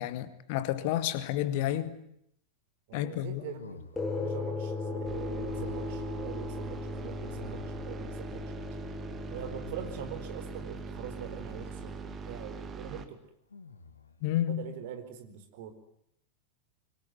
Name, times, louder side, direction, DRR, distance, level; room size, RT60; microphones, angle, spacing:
voice 1, 0.0-2.0 2.9-3.4 14.2-14.7, left 12 dB, 50° left, 2.0 m, -31 dB
voice 2, 2.9-8.4 9.3-13.2 14.5-15.7, right 8 dB, 50° right, 4.5 m, -43 dB
sound 1, 3.4-4.3 5.4-6.1 7.3-8.1 9.3-10.3 11.4-11.9 13.5-14.2, left 4 dB, 75° left, 2.4 m, -50 dB
sound 2, 4.0-12.7, left 3 dB, 15° left, 6.6 m, -38 dB
sound 3, 5.0-13.1, right 6 dB, 25° right, 2.6 m, -42 dB
25.5 x 24.0 x 9.6 m
figure-of-eight pair, 90°, 0 cm